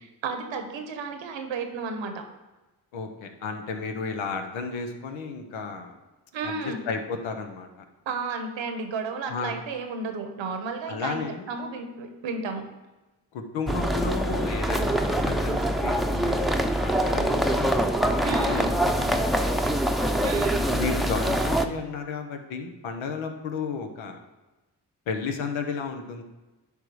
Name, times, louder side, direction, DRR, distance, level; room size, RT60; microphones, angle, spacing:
voice 1, 0.2-2.2 6.3-6.8 8.1-11.2 11.5-12.7 18.2-18.7 20.2-20.6, right 4 dB, 75° right, 6 dB, 1.1 m, -32 dB
voice 2, 2.9-5.9 6.4-7.7 9.3-9.5 10.9-11.5 13.3-16.6 16.8-19.5 20.7-24.2 25.1-26.2, left 4 dB, 90° left, 5 dB, 0.9 m, -33 dB
sound 1, 13.7-21.7, right 1 dB, ahead, 0.6 m, -24 dB
10.5 x 3.5 x 4.8 m, 1.1 s
supercardioid pair, 40°, 45 cm